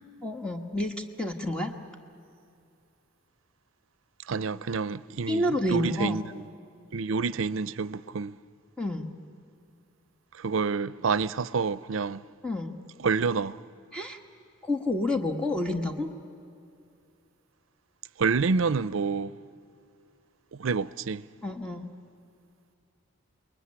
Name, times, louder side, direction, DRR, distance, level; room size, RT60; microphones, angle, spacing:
voice 1, 0.2-1.7 5.3-6.2 8.8-9.1 12.4-12.8 13.9-14.2 14.6-16.1 21.4-21.9, left 1 dB, 5° left, 1.4 m, -29 dB
voice 2, 4.3-6.4 6.9-8.3 10.4-12.2 13.0-13.6 18.2-19.4 20.6-21.2, right 4 dB, 75° right, 0.6 m, -28 dB
29.0 x 21.0 x 9.9 m
head